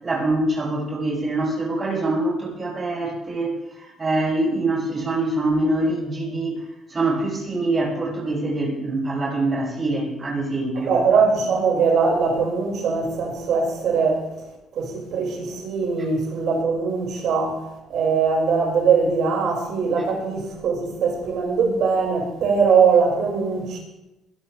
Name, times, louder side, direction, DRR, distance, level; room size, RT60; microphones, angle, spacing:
voice 1, 0.0-6.6 6.9-11.0, right 2 dB, 35° right, 6.8 m, -24 dB
voice 2, 10.7-14.2 14.8-17.6 17.9-23.8, right 5 dB, 70° right, 6.0 m, -21 dB
21.5 x 12.5 x 3.5 m
supercardioid pair, 70°, 0 cm